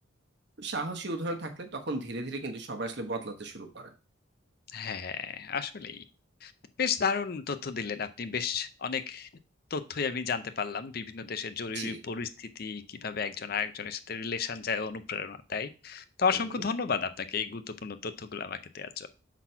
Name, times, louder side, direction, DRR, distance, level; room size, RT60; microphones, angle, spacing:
voice 1, 0.6-3.9 11.7-12.0 16.6-16.7, right 2 dB, 55° right, 5 dB, 1.1 m, -35 dB
voice 2, 4.7-6.0 6.4-6.5 6.8-9.3 9.7-19.2, left 6 dB, 50° left, 11 dB, 0.5 m, -33 dB
5.9 x 4.1 x 5.6 m, 0.33 s
head